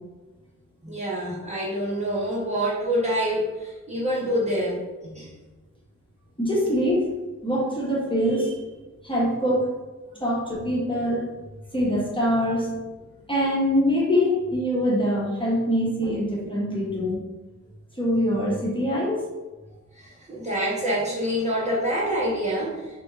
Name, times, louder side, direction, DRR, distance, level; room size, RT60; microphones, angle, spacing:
voice 1, 0.8-5.3 19.9-22.8, equal, 20° right, -7 dB, 1.1 m, -26 dB
voice 2, 6.4-7.1 7.4-8.6 9.0-9.7 10.2-11.3 11.7-12.8 13.3-17.2 18.0-19.3, equal, 15° left, -5 dB, 1.4 m, -24 dB
5.9 x 3.0 x 2.5 m, 1.2 s
cardioid pair, 70°, 32 cm